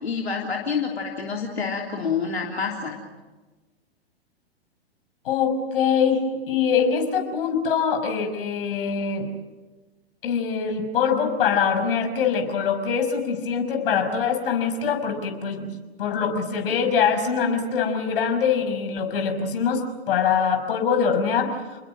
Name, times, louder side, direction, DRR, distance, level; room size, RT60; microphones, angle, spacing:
voice 1, 0.0-3.0, left 5 dB, 85° left, 0 dB, 3.4 m, -27 dB
voice 2, 5.2-9.3 10.2-21.5, left 6 dB, 60° left, 6 dB, 6.0 m, -23 dB
30.0 x 21.0 x 7.6 m, 1.2 s
hypercardioid pair, 115°, 31 cm